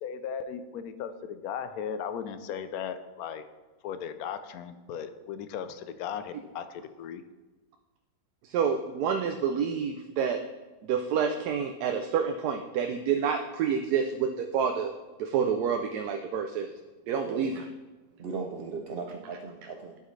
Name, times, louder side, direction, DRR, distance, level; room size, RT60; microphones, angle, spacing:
voice 1, 0.0-3.4 3.8-7.2, left 7 dB, 75° left, 11 dB, 1.0 m, -37 dB
voice 2, 8.4-10.4 10.9-14.9 15.2-16.7 17.1-17.6, right 7 dB, 80° right, 5 dB, 1.1 m, -28 dB
voice 3, 18.2-20.0, right 4 dB, 65° right, 3 dB, 0.6 m, -37 dB
12.0 x 5.6 x 3.2 m, 1.2 s
omnidirectional pair, 1.7 m